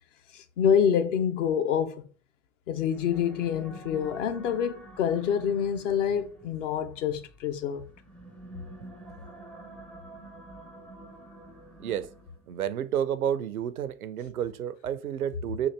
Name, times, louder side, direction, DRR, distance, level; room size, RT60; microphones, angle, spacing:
voice 1, 0.3-2.0 2.7-7.8, left 8 dB, 55° left, 0.8 m, -27 dB
sound 1, 2.7-12.6, right 1 dB, 5° left, 0.4 m, -48 dB
voice 2, 12.5-15.7, right 9 dB, 75° right, 0.5 m, -30 dB
3.8 x 2.5 x 4.4 m
figure-of-eight pair, 80°, 43 cm